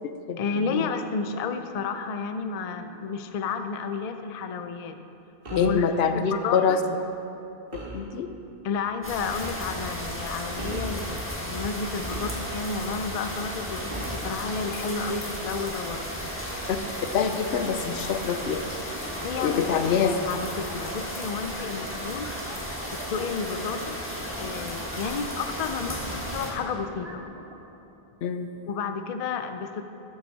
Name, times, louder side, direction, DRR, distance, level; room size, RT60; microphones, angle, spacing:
voice 1, 0.4-5.0 5.5-5.9 6.1-6.8 8.6-16.1 19.2-22.3 22.9-24.0 24.4-27.2 28.7-29.8, left 5 dB, 50° left, 8 dB, 0.5 m, -31 dB
sound 1, 5.4-5.8 7.7-8.1 9.3-9.5 10.6-11.0 12.1-12.8 13.9-14.3, right 1 dB, 65° right, 1.7 m, -37 dB
voice 2, 5.6-6.8 7.9-8.3 16.7-16.8 17.1-18.7 19.3-20.1 28.2-28.5, left 6 dB, 85° left, 9 dB, 0.8 m, -25 dB
sound 2, 9.0-26.5, equal, 10° left, 1.4 m, -34 dB
sound 3, 17.5-27.5, right 1 dB, 30° right, 0.9 m, -44 dB
12.0 x 7.9 x 4.1 m, 2.8 s
omnidirectional pair, 1.0 m